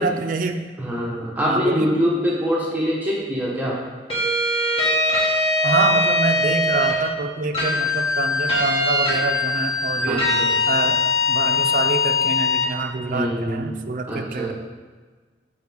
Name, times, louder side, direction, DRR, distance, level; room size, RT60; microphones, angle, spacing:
voice 1, 0.0-0.6 1.5-1.9 5.6-10.2 10.7-14.5, right 3 dB, 50° right, 5 dB, 0.4 m, -26 dB
voice 2, 0.8-3.8 10.1-10.8 13.0-13.8 14.1-14.5, equal, 10° right, -5 dB, 0.9 m, -24 dB
sound 1, 4.1-7.0 7.5-12.7, left 2 dB, 30° left, 1.5 m, -21 dB
6.4 x 4.9 x 3.5 m, 1.4 s
head